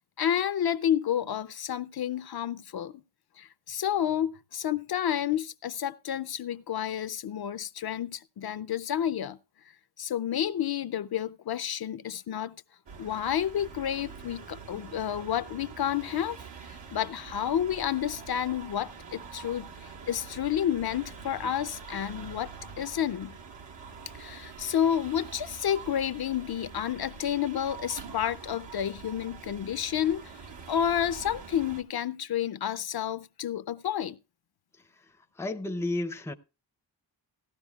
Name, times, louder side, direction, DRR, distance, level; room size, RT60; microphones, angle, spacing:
voice 1, 0.2-2.9 3.4-9.4 10.0-12.6 13.0-16.4 16.7-19.7 20.1-23.4 24.1-34.2, left 10 dB, 60° left, 0.5 m, -30 dB
sound 1, 12.9-31.8, right 5 dB, 85° right, 1.8 m, -45 dB
voice 2, 35.4-36.3, left 2 dB, 5° left, 0.5 m, -32 dB
17.0 x 12.5 x 2.3 m
wide cardioid pair, 130°, 43 cm